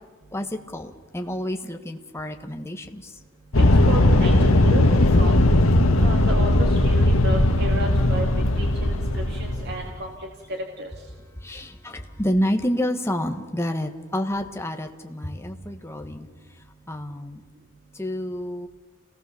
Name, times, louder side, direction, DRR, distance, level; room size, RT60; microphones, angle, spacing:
voice 1, 0.3-3.1 4.3-4.5 11.4-16.3 16.9-17.4 17.9-18.7, equal, 10° left, 5 dB, 1.5 m, -29 dB
sound 1, 3.5-10.0, left 1 dB, 80° left, 1.6 m, -18 dB
voice 2, 3.6-4.9 5.2-5.3 6.0-8.3 8.6-10.3 10.8-10.9, right 1 dB, 55° right, 1 dB, 2.3 m, -32 dB
29.5 x 18.5 x 7.0 m, 1.3 s
head